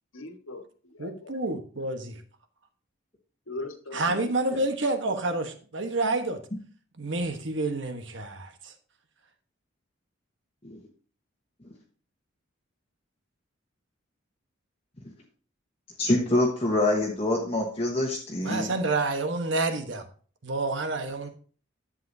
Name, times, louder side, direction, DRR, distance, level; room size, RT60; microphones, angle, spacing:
voice 1, 0.1-1.3 3.5-4.2 4.5-4.6, left 2 dB, 80° left, 5 dB, 1.6 m, -40 dB
voice 2, 1.0-2.2 3.9-6.4 7.0-8.7 18.4-20.0 20.4-21.3, right 2 dB, 60° right, 7 dB, 1.2 m, -29 dB
voice 3, 16.0-18.7, left 1 dB, 30° left, -2 dB, 1.2 m, -25 dB
11.5 x 7.7 x 2.7 m, 0.40 s
head